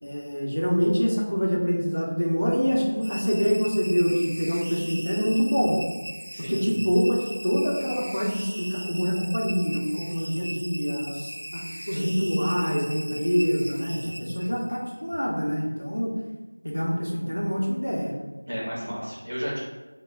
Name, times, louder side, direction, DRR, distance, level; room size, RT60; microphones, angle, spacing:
voice 1, 0.0-5.8 6.5-16.1 16.6-18.1, equal, 75° left, -3 dB, 0.7 m, -25 dB
sound 1, 3.0-14.9, equal, 60° right, 0.3 m, -39 dB
voice 2, 6.3-6.6 14.0-14.3 18.5-19.6, equal, 35° right, -6 dB, 0.8 m, -33 dB
3.2 x 2.2 x 2.5 m, 1.2 s
figure-of-eight pair, 180°, 0 cm